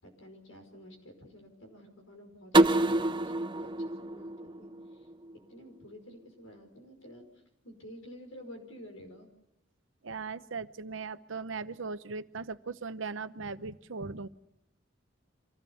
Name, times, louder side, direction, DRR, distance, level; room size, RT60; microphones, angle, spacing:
voice 1, 0.0-5.1 5.5-9.3, equal, 85° left, 4 dB, 5.3 m, -51 dB
sound 1, 2.5-5.4, right 2 dB, 25° right, 0.7 m, -27 dB
voice 2, 10.0-14.3, right 4 dB, 70° right, 12 dB, 0.9 m, -38 dB
26.0 x 17.0 x 7.2 m, 0.86 s
head